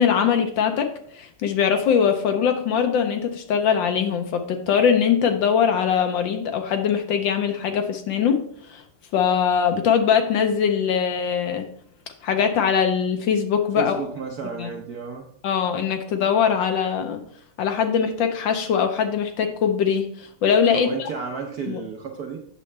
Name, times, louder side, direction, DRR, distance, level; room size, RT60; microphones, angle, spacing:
voice 1, 0.0-8.4 8.7-8.8 9.1-11.7 12.2-14.0 14.6-14.7 15.4-17.2 17.6-20.9 21.7-21.8, left 7 dB, 70° left, 6 dB, 1.3 m, -21 dB
voice 2, 13.8-15.3 20.7-22.4, right 5 dB, 65° right, 2 dB, 0.9 m, -32 dB
8.3 x 6.8 x 3.3 m, 0.64 s
omnidirectional pair, 2.3 m